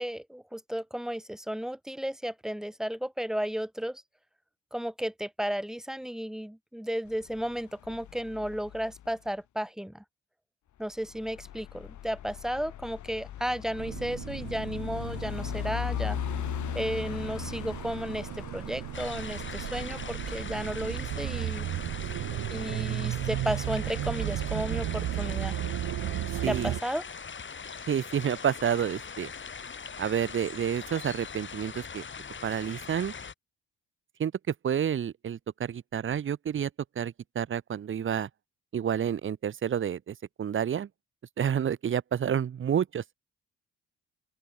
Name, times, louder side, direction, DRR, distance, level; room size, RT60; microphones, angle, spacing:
voice 1, 0.0-4.0 4.7-10.0 10.8-16.2 16.7-21.7 22.5-25.6 26.5-27.0, equal, ahead, 2.0 m, -34 dB
sound 1, 7.1-9.3 10.9-22.7, left 11 dB, 70° left, 5.8 m, -39 dB
sound 2, 13.8-26.8, right 14 dB, 80° right, 1.9 m, -34 dB
sound 3, 18.9-33.3, left 6 dB, 40° left, 6.4 m, -41 dB
voice 2, 26.4-26.7 27.9-29.3 30.0-32.0 32.4-33.1 34.2-36.7 37.0-38.3 38.7-40.9 41.4-43.1, right 8 dB, 40° right, 0.9 m, -29 dB
open air
cardioid pair, 90°, 30 cm